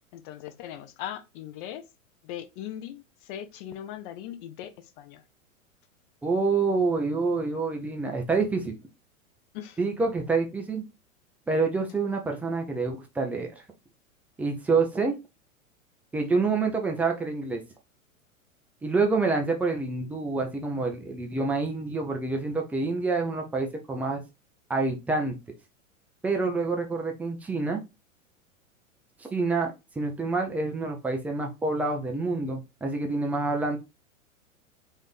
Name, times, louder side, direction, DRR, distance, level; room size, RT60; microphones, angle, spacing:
voice 1, 0.1-1.8 2.2-5.2 9.5-9.8, left 11 dB, 40° left, 0.6 m, -39 dB
voice 2, 6.2-8.7 9.8-10.8 11.5-13.5 14.4-15.1 16.1-17.6 18.8-24.2 24.7-25.3 26.2-27.8 29.3-33.8, right 3 dB, 5° right, 0.3 m, -27 dB
4.1 x 2.5 x 3.4 m
figure-of-eight pair, 95°, 41 cm